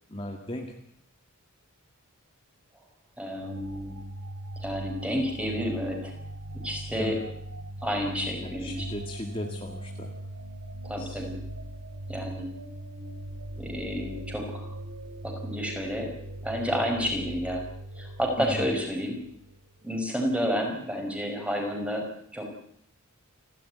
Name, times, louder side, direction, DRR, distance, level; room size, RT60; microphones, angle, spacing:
voice 1, 0.1-0.7 7.0-7.2 8.4-10.1 11.0-11.2 18.4-18.7, left 1 dB, 25° left, 2 dB, 2.1 m, -36 dB
voice 2, 3.2-4.0 4.6-6.1 6.6-7.2 7.8-8.7 10.8-11.4 12.1-12.5 13.6-14.7 15.2-16.2 16.4-17.7 18.0-19.2 19.8-22.5, equal, 5° right, 2 dB, 5.4 m, -30 dB
sound 1, 3.4-19.7, right 1 dB, 70° right, 3.2 m, -40 dB
29.5 x 13.0 x 9.4 m, 0.70 s
head